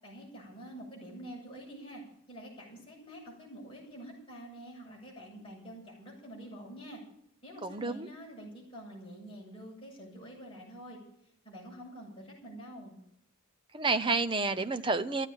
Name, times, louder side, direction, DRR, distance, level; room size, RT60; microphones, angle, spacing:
voice 1, 0.0-2.0 2.3-7.0 7.4-11.0 11.4-13.0, right 1 dB, 25° left, -4 dB, 7.7 m, -47 dB
voice 2, 7.6-8.1 13.7-15.3, right 3 dB, 20° right, 10 dB, 0.7 m, -30 dB
15.0 x 9.8 x 9.0 m, 0.75 s
head